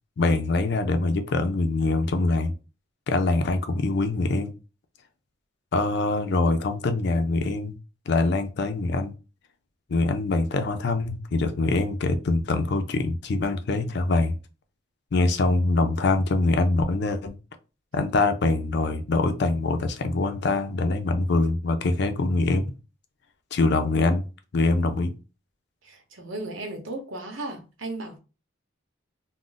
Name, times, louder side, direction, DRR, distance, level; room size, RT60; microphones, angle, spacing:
voice 1, 0.2-2.5 3.1-4.5 5.7-7.7 8.1-9.1 9.9-14.4 15.1-17.3 17.9-22.7 23.5-24.3 24.5-25.1, left 2 dB, 60° left, 0.5 m, -24 dB
voice 2, 25.8-28.2, right 2 dB, 90° right, 0.9 m, -35 dB
2.5 x 2.1 x 3.8 m
head